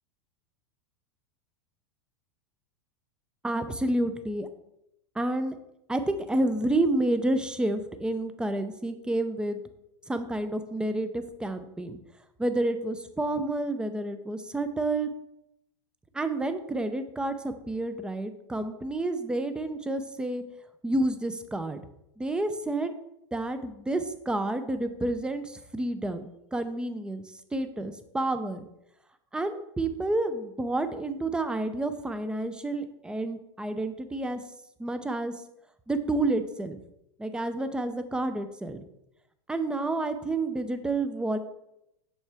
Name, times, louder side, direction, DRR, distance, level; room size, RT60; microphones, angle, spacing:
voice 1, 3.4-4.5 5.2-5.6 5.9-9.6 10.1-12.0 12.4-15.1 16.1-20.4 20.8-21.8 22.2-22.9 23.3-27.2 27.5-28.7 29.3-34.4 34.8-35.3 35.9-36.8 37.2-38.8 39.5-41.4, right 2 dB, 5° right, 10 dB, 0.5 m, -29 dB
7.2 x 5.6 x 3.4 m, 0.84 s
supercardioid pair, 125°, 16 cm